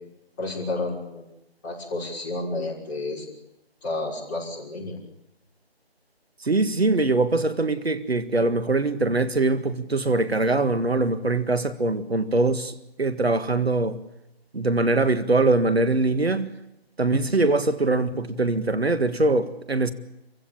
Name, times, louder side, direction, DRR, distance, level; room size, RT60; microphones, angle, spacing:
voice 1, 0.4-1.3 1.6-3.3 3.8-5.0, left 2 dB, 20° left, 6.1 m, -31 dB
voice 2, 6.4-14.0 14.5-16.5 17.0-19.9, right 2 dB, 75° right, 1.9 m, -22 dB
27.5 x 16.0 x 8.8 m
figure-of-eight pair, 160°, 31 cm